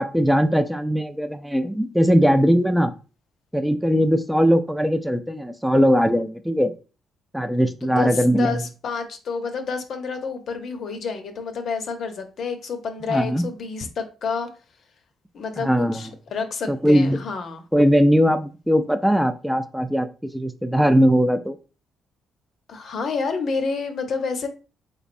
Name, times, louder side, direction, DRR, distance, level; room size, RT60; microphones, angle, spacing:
voice 1, 0.0-2.9 3.5-6.7 7.3-8.6 13.1-13.4 15.6-16.0 16.7-17.2 17.7-21.6, equal, 5° right, 0.3 m, -20 dB
voice 2, 7.8-14.5 15.3-17.6 22.7-24.5, left 5 dB, 60° left, 0.6 m, -29 dB
3.5 x 3.1 x 2.5 m
cardioid pair, 90°, 0 cm